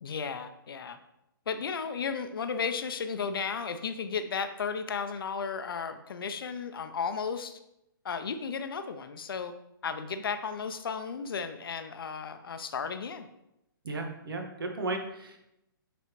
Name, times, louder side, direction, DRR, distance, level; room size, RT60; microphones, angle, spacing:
voice 1, 0.0-1.0 1.5-7.6 8.0-9.5 9.8-13.3, left 6 dB, 75° left, 9 dB, 0.6 m, -34 dB
voice 2, 13.8-15.4, right 2 dB, 75° right, 3 dB, 1.5 m, -35 dB
9.2 x 4.0 x 3.1 m, 0.85 s
hypercardioid pair, 135°, 12 cm